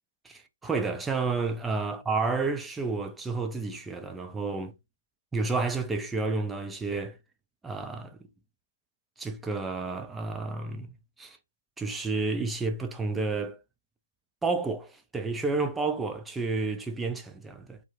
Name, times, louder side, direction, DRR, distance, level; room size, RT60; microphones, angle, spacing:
voice 1, 0.2-4.7 5.3-7.2 7.6-8.2 9.2-11.4 11.8-13.6 14.4-17.8, right 3 dB, 5° right, 0.3 m, -30 dB
2.2 x 2.0 x 3.1 m
figure-of-eight pair, 140°, 0 cm